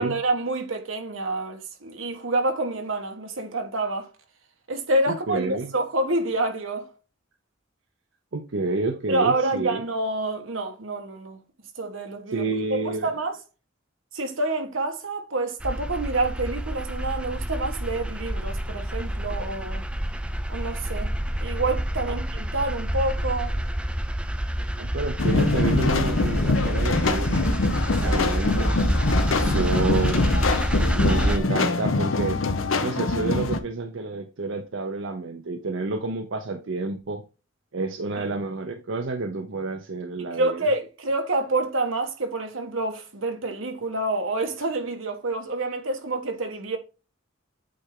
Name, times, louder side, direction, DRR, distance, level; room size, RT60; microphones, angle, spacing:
voice 1, 0.0-4.1 4.7-6.9 9.1-11.4 11.7-13.4 14.1-19.9 20.5-23.5 27.9-28.2 29.5-29.7 38.2-38.3 40.2-46.8, right 2 dB, 90° right, 1.4 m, -28 dB
voice 2, 5.1-5.7 8.3-9.8 12.3-13.1 22.1-22.2 24.8-27.5 28.0-28.8 29.4-30.3 30.9-32.4 32.8-37.2 37.7-40.6, right 3 dB, 65° right, 0.7 m, -29 dB
sound 1, 15.6-31.4, equal, 5° right, 0.4 m, -27 dB
sound 2, 25.2-33.6, left 3 dB, 85° left, 0.8 m, -24 dB
8.5 x 3.4 x 3.7 m
head